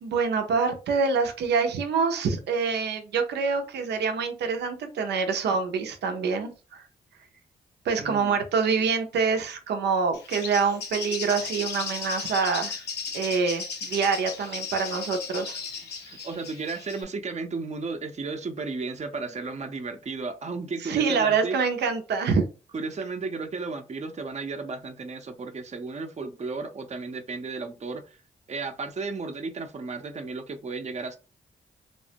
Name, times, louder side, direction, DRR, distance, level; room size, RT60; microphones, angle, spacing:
voice 1, 0.0-6.8 7.8-12.8 13.1-15.6 20.8-22.4, right 5 dB, 80° right, 0.6 m, -26 dB
voice 2, 8.0-8.4 16.0-21.6 22.7-28.2 28.5-31.2, right 4 dB, 40° right, 0.7 m, -34 dB
Bird, 10.1-17.0, left 5 dB, 75° left, 0.9 m, -36 dB
3.3 x 2.1 x 2.7 m
supercardioid pair, 50°, 17 cm